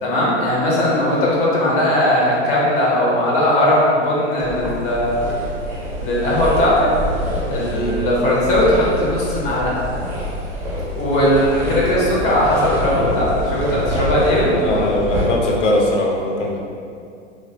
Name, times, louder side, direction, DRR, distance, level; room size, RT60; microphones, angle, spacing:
voice 1, 0.0-5.3 6.0-6.9 7.5-9.7 10.9-14.9, left 1 dB, 20° left, -5 dB, 0.5 m, -18 dB
sound 1, 4.4-15.3, equal, 20° right, 0.7 m, -26 dB
voice 2, 14.6-16.6, left 1 dB, 70° left, -1 dB, 0.6 m, -20 dB
3.2 x 2.1 x 2.5 m, 2.4 s
figure-of-eight pair, 100°, 37 cm